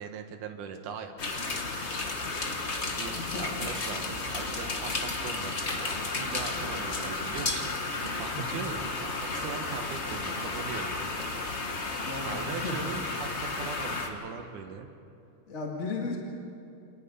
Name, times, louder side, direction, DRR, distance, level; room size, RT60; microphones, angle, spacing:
voice 1, 0.0-1.6 3.0-5.9 6.2-11.0 12.2-14.9, right 6 dB, 75° right, 5 dB, 2.8 m, -40 dB
sound 1, 1.2-14.1, left 3 dB, 55° left, 0.7 m, -33 dB
voice 2, 3.2-3.5 8.3-8.6 12.1-12.8 15.5-16.2, left 4 dB, 25° left, -1 dB, 1.9 m, -35 dB
27.5 x 19.0 x 5.5 m, 2.6 s
omnidirectional pair, 3.7 m